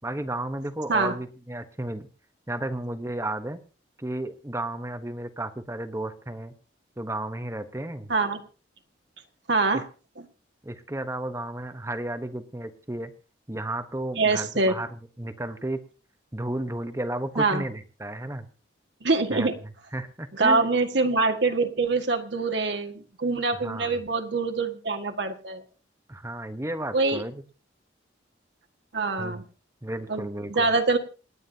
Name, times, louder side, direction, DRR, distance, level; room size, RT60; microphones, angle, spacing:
voice 1, 0.0-2.1 2.5-3.6 4.0-6.5 7.0-8.1 9.7-9.8 10.6-13.1 13.5-14.9 15.2-15.8 16.3-18.5 19.3-19.5 19.9-20.7 23.6-24.0 26.1-27.4 29.2-29.4 29.8-30.7, right 1 dB, 15° right, 9 dB, 0.9 m, -33 dB
voice 2, 8.1-8.4 9.5-9.8 14.2-14.8 17.4-17.6 19.0-19.5 20.3-25.6 26.9-27.2 28.9-29.4 30.1-31.0, right 3 dB, 65° right, 5 dB, 1.7 m, -24 dB
28.0 x 9.6 x 2.8 m, 0.35 s
head